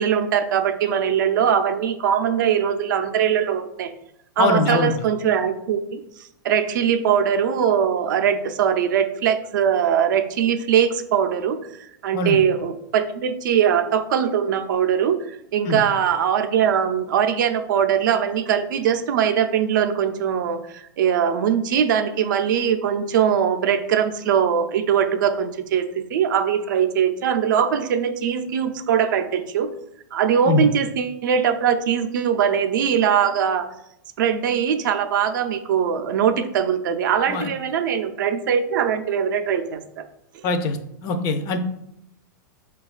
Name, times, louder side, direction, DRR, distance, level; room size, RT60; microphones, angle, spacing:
voice 1, 0.0-3.9 4.4-6.0 6.4-29.7 30.1-33.7 34.2-40.0, right 8 dB, 70° right, 8 dB, 0.4 m, -21 dB
voice 2, 4.4-4.9 12.1-12.4 15.7-15.8 30.5-30.7 37.3-37.5 40.4-40.8 41.0-41.6, left 3 dB, 35° left, 8 dB, 0.4 m, -22 dB
4.9 x 2.2 x 2.3 m, 0.78 s
hypercardioid pair, 125°, 11 cm